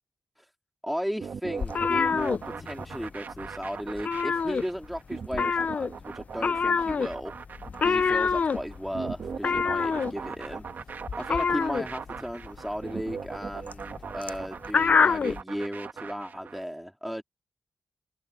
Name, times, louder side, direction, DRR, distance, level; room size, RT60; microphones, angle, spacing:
voice 1, 0.8-7.3 7.8-10.6 11.2-17.2, equal, ahead, 2.2 m, -35 dB
sound 1, 1.2-16.6, right 6 dB, 70° right, 1.7 m, -39 dB
sound 2, 1.6-3.1 3.3-3.6 3.9-5.0 5.3-15.4, left 5 dB, 50° left, 0.3 m, -26 dB
wide cardioid pair, 105°, 3 cm